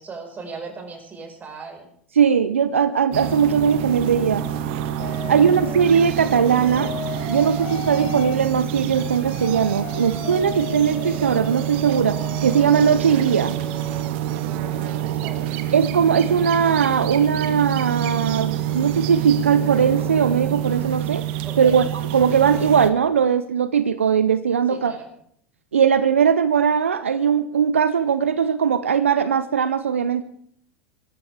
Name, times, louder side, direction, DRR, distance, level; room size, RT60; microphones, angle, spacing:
voice 1, 0.0-1.9 14.4-15.5 21.4-21.8 24.7-25.1, right 4 dB, 25° right, 3 dB, 5.2 m, -38 dB
voice 2, 2.2-4.4 5.3-6.9 7.3-13.5 15.7-21.2 21.6-24.9 25.7-30.2, right 7 dB, 85° right, 13 dB, 0.6 m, -19 dB
sound 1, 3.1-22.9, right 11 dB, 60° right, 1.3 m, -27 dB
sound 2, 5.0-8.4 8.9-14.0, left 5 dB, 50° left, 7.5 m, -36 dB
25.5 x 13.0 x 3.5 m, 0.67 s
hypercardioid pair, 85°, 7 cm